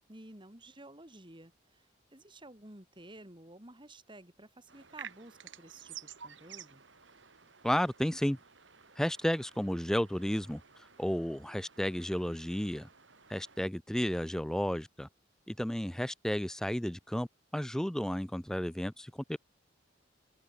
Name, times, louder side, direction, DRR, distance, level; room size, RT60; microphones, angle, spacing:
voice 1, 0.0-1.9 2.1-6.8, right 1 dB, 25° right, 4.2 m, -53 dB
sound 1, 4.7-13.6, right 7 dB, 80° right, 4.2 m, -53 dB
voice 2, 7.6-8.4 9.0-10.6 11.0-12.9 13.3-15.1 15.5-19.4, equal, 5° left, 0.4 m, -32 dB
head